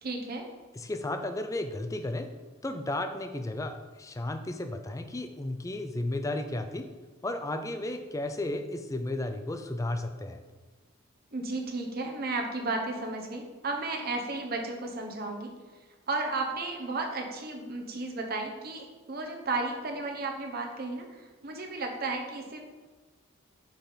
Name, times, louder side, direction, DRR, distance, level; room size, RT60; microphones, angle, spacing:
voice 1, 0.0-0.5 11.3-15.5 16.1-22.6, right 3 dB, 45° right, 2 dB, 0.9 m, -33 dB
voice 2, 0.8-2.3 2.6-6.9 7.2-10.4, left 1 dB, 15° left, 7 dB, 0.4 m, -33 dB
5.8 x 4.4 x 5.0 m, 1.3 s
head